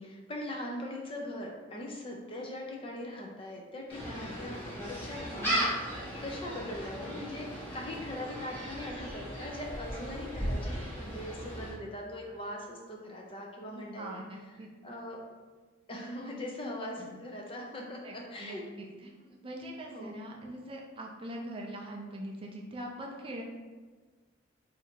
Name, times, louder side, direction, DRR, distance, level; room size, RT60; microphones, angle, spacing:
voice 1, 0.0-14.3 14.8-15.2 15.9-18.6 19.9-20.2, left 1 dB, 30° left, 0 dB, 0.5 m, -41 dB
Gull seagull, 3.9-11.7, equal, 10° left, 1.2 m, -36 dB
voice 2, 14.0-14.7 16.6-17.2 18.0-23.4, right 1 dB, 30° right, -1 dB, 0.5 m, -43 dB
2.8 x 2.5 x 4.3 m, 1.4 s
head